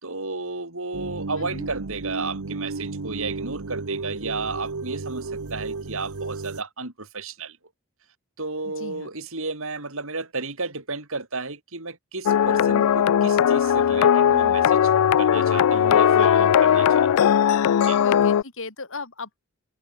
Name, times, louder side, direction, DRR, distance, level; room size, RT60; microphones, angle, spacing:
voice 1, 0.0-7.6 8.4-14.8 15.2-17.1 17.8-18.0, right 3 dB, 65° right, 5.2 m, -33 dB
sound 1, 0.9-6.6, right 3 dB, 90° right, 1.0 m, -33 dB
voice 2, 1.4-1.7 8.6-9.1 15.9-16.9 18.0-19.4, left 3 dB, 65° left, 4.3 m, -38 dB
sound 2, 12.3-18.4, left 9 dB, 90° left, 0.4 m, -18 dB
head